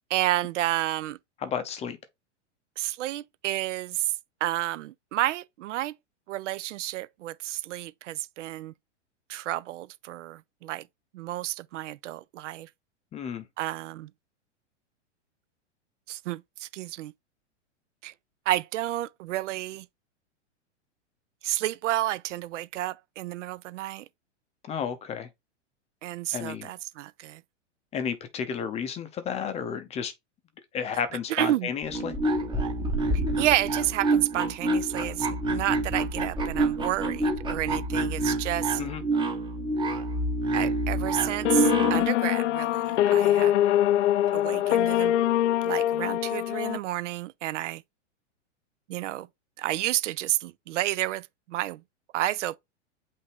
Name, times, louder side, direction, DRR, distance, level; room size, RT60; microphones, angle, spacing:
voice 1, 0.1-1.2 2.8-4.1 4.4-5.9 6.3-8.7 9.3-10.9 11.1-12.7 13.6-14.1 16.1-17.1 18.0-18.1 18.5-19.9 21.4-24.0 26.0-27.4 31.3-31.7 33.1-38.8 40.5-43.5 44.3-45.1 45.6-47.8 48.9-49.3 49.6-51.8 52.1-52.6, right 15 dB, 75° right, 0.5 m, -30 dB
voice 2, 1.4-2.0 13.1-13.4 24.7-25.3 26.3-26.7 27.9-30.1 30.7-32.2 38.8-39.0, left 7 dB, 20° left, 0.5 m, -32 dB
sound 1, 31.8-42.1, right 2 dB, 15° right, 0.8 m, -27 dB
sound 2, 41.5-46.8, left 13 dB, 75° left, 0.5 m, -23 dB
5.6 x 2.6 x 3.3 m
hypercardioid pair, 130°, 37 cm